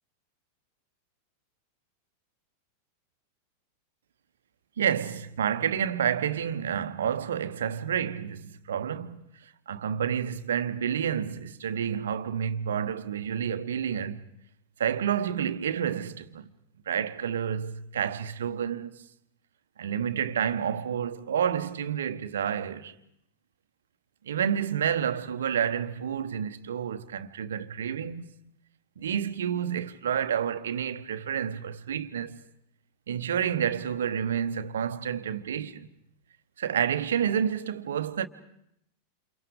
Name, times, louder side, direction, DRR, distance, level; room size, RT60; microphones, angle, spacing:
voice 1, 4.8-9.3 9.7-14.2 14.8-16.5 16.9-18.9 19.8-22.9 24.2-28.3 29.0-32.4 33.1-35.9 36.6-38.3, right 8 dB, 65° right, 1.1 m, -29 dB
29.0 x 28.0 x 5.1 m
figure-of-eight pair, 90°, 0 cm